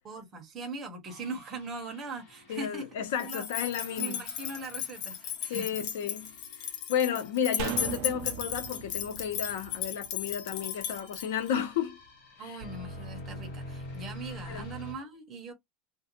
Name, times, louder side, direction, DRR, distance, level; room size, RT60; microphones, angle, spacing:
voice 1, 0.0-3.5 4.0-5.7 12.4-15.5, right 3 dB, 20° right, 0.8 m, -40 dB
sound 1, 1.0-14.9, left 1 dB, 60° left, 1.2 m, -48 dB
voice 2, 2.5-4.2 5.5-6.3 6.9-12.0 12.4-12.5 14.4-14.7, left 9 dB, 90° left, 0.8 m, -32 dB
sound 2, 3.2-11.5, left 10 dB, 40° left, 0.6 m, -36 dB
sound 3, 7.6-10.9 11.2-11.3, right 10 dB, 50° right, 0.3 m, -39 dB
2.4 x 2.2 x 2.9 m
supercardioid pair, 175°, 0 cm